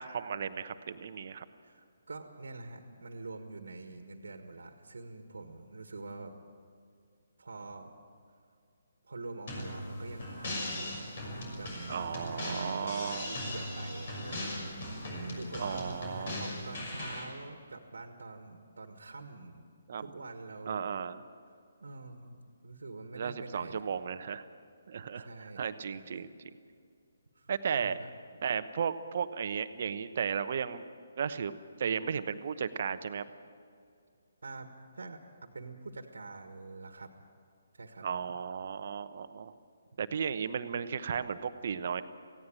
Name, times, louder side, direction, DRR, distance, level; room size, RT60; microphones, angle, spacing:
voice 1, 0.0-1.5 11.9-13.3 15.6-16.4 19.9-20.1 20.7-21.2 23.1-24.4 24.9-26.3 27.5-28.0 28.4-30.9 31.2-31.5 31.8-33.2 38.0-39.5 40.0-42.0, right 7 dB, 50° right, 11 dB, 0.9 m, -34 dB
voice 2, 1.6-6.3 7.4-7.9 9.0-11.0 11.6-11.7 12.8-14.7 15.4-16.0 16.4-19.6 20.0-20.9 21.8-23.9 25.1-25.6 25.9-26.2 27.3-28.1 34.4-37.1 37.7-38.0, right 3 dB, 75° right, 6 dB, 1.7 m, -46 dB
sound 1, 9.5-17.2, left 1 dB, 50° left, 6.2 m, -39 dB
18.5 x 16.0 x 8.9 m, 2.3 s
figure-of-eight pair, 140°, 0 cm